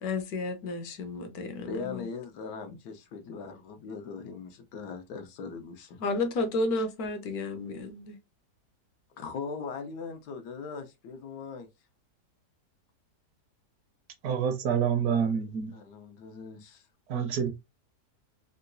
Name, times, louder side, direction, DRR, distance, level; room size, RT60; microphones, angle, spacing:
voice 1, 0.0-2.1 6.0-8.2, left 2 dB, 70° left, 1.1 m, -32 dB
voice 2, 1.6-6.0 9.2-11.7 15.7-16.8, left 5 dB, 90° left, 1.3 m, -40 dB
voice 3, 14.2-15.7 17.1-17.5, right 7 dB, 70° right, 1.1 m, -27 dB
3.9 x 2.2 x 2.5 m
omnidirectional pair, 1.7 m